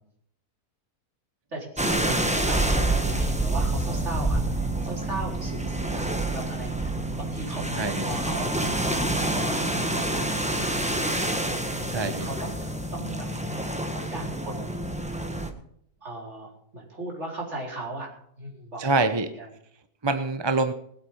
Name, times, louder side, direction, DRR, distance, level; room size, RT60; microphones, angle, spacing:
voice 1, 1.5-4.4 4.8-11.4 11.9-12.5 12.9-14.8 16.0-18.9 19.4-19.5, right 2 dB, 50° right, -2 dB, 4.7 m, -38 dB
sound 1, 1.8-15.5, right 1 dB, 5° right, 1.3 m, -27 dB
voice 2, 11.9-12.3 18.8-19.3 20.0-20.7, right 3 dB, 25° right, 9 dB, 0.7 m, -25 dB
20.0 x 8.4 x 5.7 m, 0.70 s
omnidirectional pair, 1.6 m